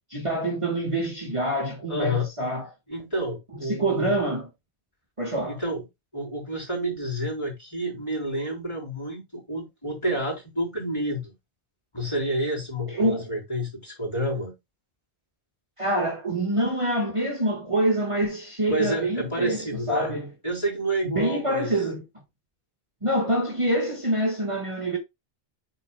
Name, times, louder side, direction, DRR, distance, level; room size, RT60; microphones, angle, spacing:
voice 1, 0.1-2.7 3.5-4.5 5.2-5.6 12.9-13.3 15.8-20.3 21.1-22.0 23.0-25.0, right 1 dB, 30° right, 1.7 m, -26 dB
voice 2, 1.9-2.3 2.9-4.2 5.5-5.9 6.1-11.3 11.9-14.5 18.7-20.1 20.4-21.7, equal, 25° left, 3.9 m, -29 dB
8.2 x 5.7 x 2.2 m
omnidirectional pair, 1.1 m